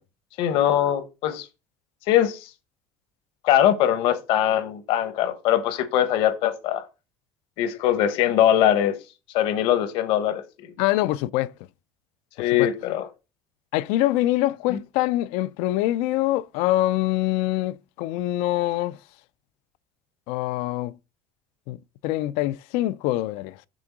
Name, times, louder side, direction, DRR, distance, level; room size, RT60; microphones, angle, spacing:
voice 1, 0.4-1.4 2.1-2.5 3.4-6.9 7.6-9.0 9.3-10.4 12.4-13.1 14.7-14.8, left 11 dB, 60° left, 1.1 m, -21 dB
voice 2, 10.8-11.5 12.6-12.7 13.7-19.0 20.3-20.9 21.7-21.8 22.0-23.6, left 16 dB, 80° left, 0.4 m, -24 dB
6.2 x 3.6 x 6.0 m
cardioid pair, 165°, 10 cm